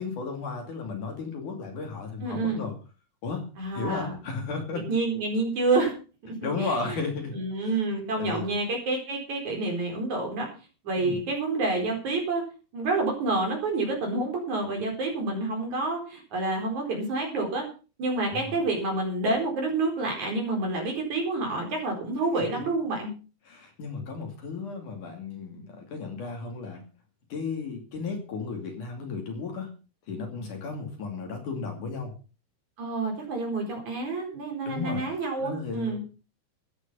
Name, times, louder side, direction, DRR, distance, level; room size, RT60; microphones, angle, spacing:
voice 1, 0.0-2.8 3.2-3.4 3.7-4.8 6.4-7.4 7.6-7.8 8.2-8.4 11.0-11.2 18.3-18.6 22.4-22.5 23.5-26.8 27.3-29.7 30.1-32.1 34.6-35.1 35.4-36.0, left 4 dB, 55° left, 3 dB, 3.8 m, -34 dB
voice 2, 2.2-2.6 3.6-4.2 4.9-5.9 6.2-7.0 7.3-10.5 10.8-12.4 12.7-17.7 18.0-23.1 32.8-36.0, right 3 dB, 45° right, 2 dB, 5.7 m, -28 dB
14.5 x 10.0 x 5.5 m, 0.35 s
omnidirectional pair, 4.6 m